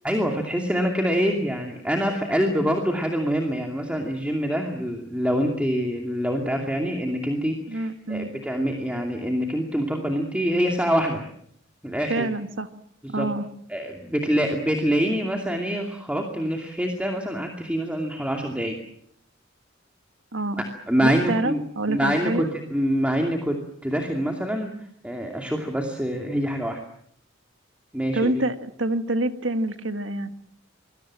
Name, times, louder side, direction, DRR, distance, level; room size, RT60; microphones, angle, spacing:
voice 1, 0.0-11.2 11.8-12.3 13.0-13.3 13.7-18.8 20.9-21.6 21.9-26.8 27.9-28.4, equal, 5° right, 2 dB, 2.5 m, -25 dB
voice 2, 7.7-8.3 12.1-12.7 13.1-13.5 20.3-20.6 21.0-22.5 28.1-30.3, right 2 dB, 70° right, 9 dB, 1.8 m, -26 dB
26.5 x 21.5 x 7.6 m, 0.67 s
head